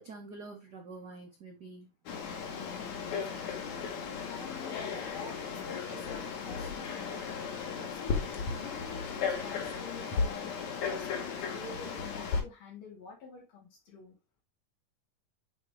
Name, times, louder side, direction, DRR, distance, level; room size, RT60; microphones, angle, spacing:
voice 1, 0.0-1.9, right 3 dB, 75° right, 0.9 m, -46 dB
Frog, 2.1-12.4, left 5 dB, 65° left, 2.5 m, -35 dB
voice 2, 2.5-10.6 10.8-14.2, left 4 dB, 85° left, 4.6 m, -49 dB
9.4 x 3.7 x 3.2 m
omnidirectional pair, 3.7 m